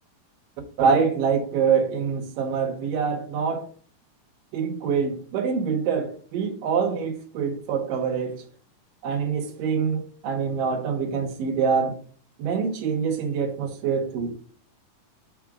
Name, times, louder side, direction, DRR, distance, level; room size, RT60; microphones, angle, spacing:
voice 1, 0.8-3.7 4.5-8.4 9.0-12.0 12.4-14.3, right 6 dB, 80° right, 2.7 m, -25 dB
4.9 x 4.5 x 6.0 m
omnidirectional pair, 3.9 m